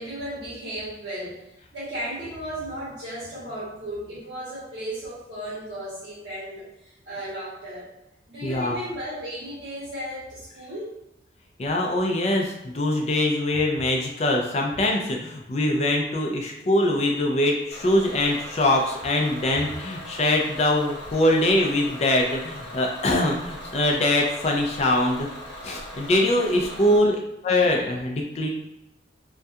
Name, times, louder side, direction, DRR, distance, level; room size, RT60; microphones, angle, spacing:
voice 1, 0.0-7.9 8.3-10.9, right 1 dB, 65° right, -9 dB, 0.8 m, -35 dB
voice 2, 8.4-8.8 11.6-25.3 25.6-28.5, left 1 dB, 35° left, 0 dB, 0.4 m, -23 dB
Bus / Engine, 17.7-27.0, equal, 70° left, 0.9 m, -40 dB
2.3 x 2.2 x 2.7 m, 0.89 s
head